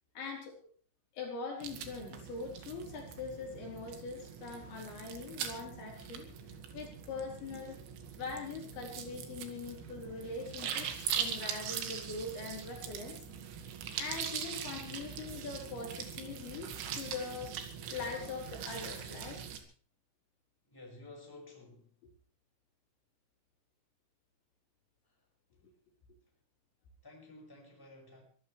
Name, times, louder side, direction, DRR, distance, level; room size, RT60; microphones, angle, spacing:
voice 1, 0.2-0.7 1.1-7.8 8.2-13.2 14.0-19.4, left 4 dB, 70° left, -1 dB, 6.1 m, -42 dB
sound 1, 1.6-19.6, right 8 dB, 80° right, 4.4 m, -42 dB
voice 2, 20.7-21.9 27.0-28.2, left 2 dB, 5° left, -1 dB, 5.1 m, -52 dB
24.0 x 16.0 x 3.3 m, 0.43 s
omnidirectional pair, 5.5 m